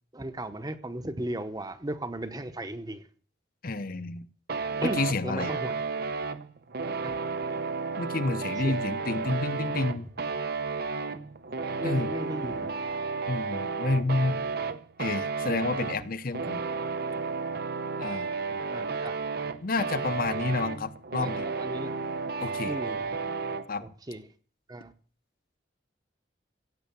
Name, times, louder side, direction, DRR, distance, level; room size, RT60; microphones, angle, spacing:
voice 1, 0.1-3.1 4.8-6.0 7.0-7.2 8.6-8.8 11.8-12.7 18.5-19.2 21.2-21.9 22.6-23.1 23.8-24.3 24.7-24.9, right 1 dB, 20° right, 1.0 m, -36 dB
voice 2, 3.6-4.3 4.8-5.5 8.0-10.1 11.8-12.1 13.3-14.4 15.0-16.6 18.0-18.3 19.6-21.5 22.4-22.8 23.7-23.8, left 3 dB, 50° left, 0.9 m, -29 dB
sound 1, 4.5-23.7, right 4 dB, 55° right, 0.8 m, -32 dB
16.0 x 7.6 x 7.0 m
head